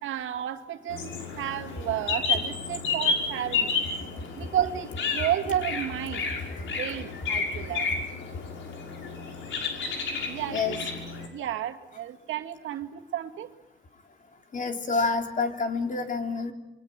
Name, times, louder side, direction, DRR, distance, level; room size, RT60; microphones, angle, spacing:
voice 1, 0.0-3.8 4.4-6.3 6.7-7.9 10.2-10.9 11.3-13.5, right 11 dB, 80° right, 5 dB, 2.2 m, -32 dB
sound 1, 0.9-11.3, left 4 dB, 75° left, 6.1 m, -31 dB
voice 2, 10.5-10.8 14.5-16.5, left 4 dB, 40° left, 5 dB, 3.8 m, -28 dB
27.5 x 23.5 x 9.0 m, 0.89 s
cardioid pair, 90°, 20 cm